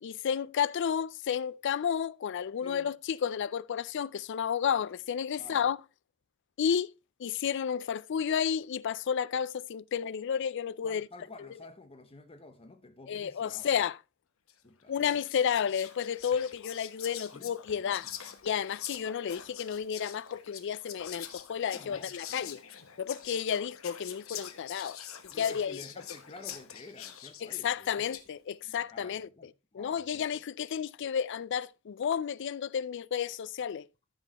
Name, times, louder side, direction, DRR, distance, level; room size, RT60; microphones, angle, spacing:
voice 1, 0.0-5.8 6.6-6.9 7.2-11.1 13.1-14.0 14.9-18.0 18.4-22.6 23.0-25.0 25.4-25.8 27.4-29.3 29.7-33.9, left 8 dB, 60° left, 0.4 m, -31 dB
voice 2, 2.6-2.9 5.4-5.7 10.8-13.8 14.6-15.2 17.3-17.5 17.8-18.2 21.6-22.7 25.3-28.1 28.6-30.3, left 2 dB, 30° left, 0.8 m, -51 dB
Whispering, 14.5-14.7 15.1-28.3, left 10 dB, 80° left, 1.1 m, -45 dB
14.0 x 6.2 x 2.9 m
head